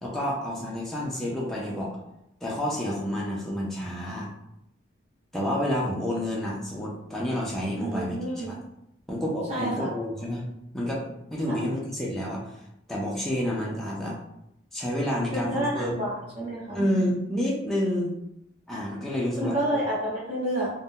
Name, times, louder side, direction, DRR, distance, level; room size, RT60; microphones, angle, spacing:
voice 1, 0.0-2.0 2.4-4.3 5.3-8.6 9.1-10.5 10.7-12.6 12.9-14.2 14.7-16.1 16.7-18.1 18.7-19.5, equal, ahead, -5 dB, 0.4 m, -29 dB
voice 2, 7.7-8.5 9.5-9.9 11.5-11.6 15.3-16.8 19.3-20.7, right 1 dB, 35° right, -6 dB, 1.0 m, -29 dB
2.6 x 2.1 x 3.5 m, 0.82 s
head